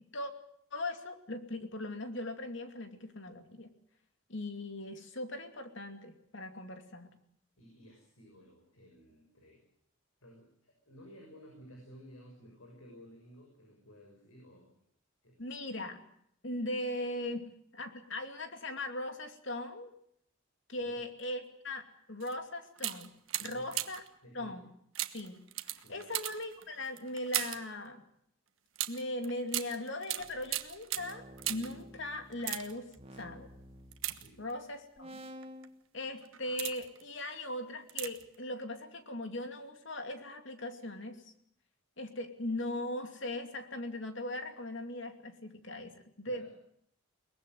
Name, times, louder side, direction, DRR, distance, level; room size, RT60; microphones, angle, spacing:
voice 1, 0.7-3.7 4.3-7.1 15.4-16.0 16.4-19.9 20.7-23.1 23.4-24.0 24.3-24.7 25.1-28.0 28.9-32.9 33.2-33.5 34.4-35.2 35.9-41.3 42.0-46.5, left 1 dB, 60° left, 7 dB, 2.7 m, -39 dB
voice 2, 7.6-9.6 10.2-14.8 15.2-15.4 20.7-21.0 23.4-23.7 24.2-24.6 25.8-26.1 34.1-34.4 46.2-46.5, equal, 85° left, 2 dB, 6.5 m, -55 dB
sound 1, 22.2-22.4 22.8-24.1 25.0-27.7 28.8-31.8 32.3-33.0 33.9-34.8 35.4-35.7 36.2-37.0 37.9-38.4 38.6-38.7, right 14 dB, 75° right, 1.3 m, -38 dB
sound 2, 30.2-34.6 35.0-35.7, equal, 30° right, 2.0 m, -51 dB
22.0 x 20.0 x 7.8 m, 0.70 s
head